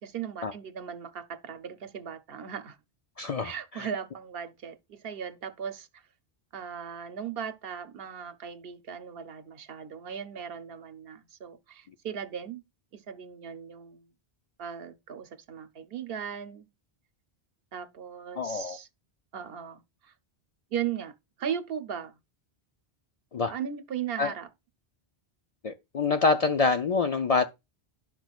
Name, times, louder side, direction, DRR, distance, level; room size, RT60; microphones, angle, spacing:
voice 1, 0.0-2.8 3.4-6.0 6.5-12.6 12.9-14.0 14.6-16.7 17.7-18.9 19.3-20.1 20.7-21.1 21.4-22.1 23.5-24.5, right 8 dB, 70° right, 0.9 m, -37 dB
voice 2, 3.2-3.9 18.4-18.8 23.3-23.5 24.2-24.3 25.6-27.5, left 4 dB, 50° left, 0.5 m, -26 dB
11.5 x 6.0 x 2.3 m
omnidirectional pair, 1.0 m